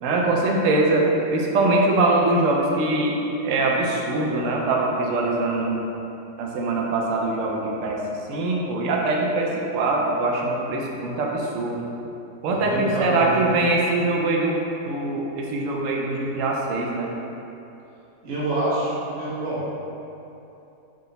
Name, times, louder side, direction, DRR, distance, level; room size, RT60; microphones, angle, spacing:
voice 1, 0.0-5.8 6.4-11.9 12.4-14.6 14.8-17.1, right 2 dB, 70° right, -1 dB, 0.7 m, -23 dB
voice 2, 12.5-13.6 18.2-19.6, right 1 dB, 50° right, -9 dB, 1.4 m, -26 dB
3.7 x 3.3 x 3.9 m, 2.8 s
omnidirectional pair, 1.9 m